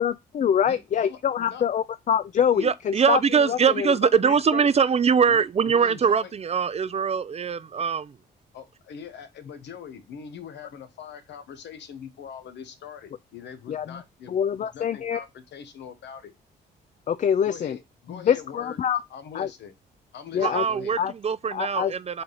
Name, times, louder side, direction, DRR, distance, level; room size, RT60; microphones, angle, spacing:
voice 1, 0.0-4.0 13.7-14.0 14.3-15.2 17.1-17.8 18.1-19.0 19.3-19.5 20.3-20.6 21.0-21.1 21.5-21.9, left 8 dB, 45° left, 0.4 m, -25 dB
voice 2, 0.7-1.6 5.3-6.3 8.5-16.3 17.4-19.7 20.1-21.0, left 7 dB, 70° left, 0.9 m, -42 dB
voice 3, 2.6-8.2 20.4-21.0 21.2-22.2, right 6 dB, 35° right, 0.4 m, -22 dB
4.1 x 3.3 x 3.8 m
supercardioid pair, 65°, 19 cm